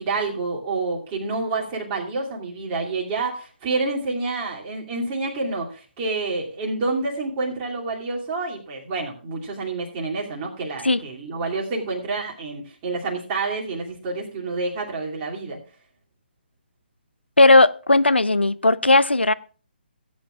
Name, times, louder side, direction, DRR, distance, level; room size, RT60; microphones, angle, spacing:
voice 1, 0.0-15.6, right 3 dB, 25° right, 2.6 m, -28 dB
voice 2, 17.4-19.3, left 2 dB, 85° left, 0.5 m, -16 dB
17.5 x 8.9 x 2.4 m
figure-of-eight pair, 140°, 6 cm